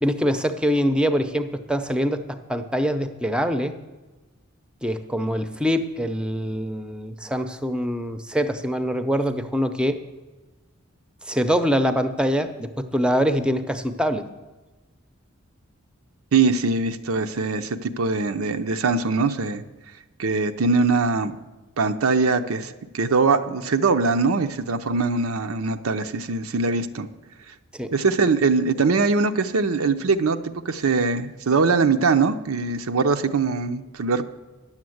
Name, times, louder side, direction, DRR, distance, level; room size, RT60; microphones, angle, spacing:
voice 1, 0.0-3.7 4.8-10.0 11.2-14.2 27.7-27.9, equal, 5° right, 9 dB, 0.6 m, -24 dB
voice 2, 16.3-19.6 20.2-21.3 21.8-27.1 27.9-34.2, right 4 dB, 85° right, 8 dB, 0.6 m, -22 dB
10.5 x 7.3 x 7.8 m, 1.2 s
head